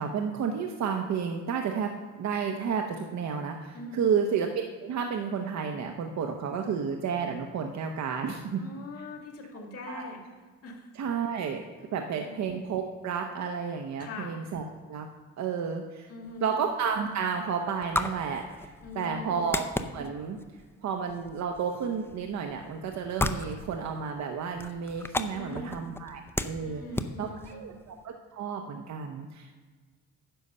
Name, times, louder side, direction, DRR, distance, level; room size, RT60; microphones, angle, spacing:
voice 1, 0.0-4.5 4.8-8.6 9.0-9.1 9.5-10.0 10.9-11.6 11.9-14.6 14.9-15.1 15.4-16.1 16.4-19.7 19.9-20.4 20.8-26.8 27.2-29.5, right 6 dB, 65° right, 4 dB, 0.9 m, -31 dB
voice 2, 3.7-4.1 8.6-10.2 10.6-10.9 11.9-12.4 14.0-14.3 16.1-16.6 18.8-19.5 25.3-25.8 26.6-27.7, left 2 dB, 50° left, 1 dB, 2.2 m, -42 dB
Film Canister Open and Close Sounds, 16.3-28.0, left 2 dB, 10° left, 0.6 m, -37 dB
10.0 x 6.5 x 5.5 m, 1.4 s
cardioid pair, 90°, 30 cm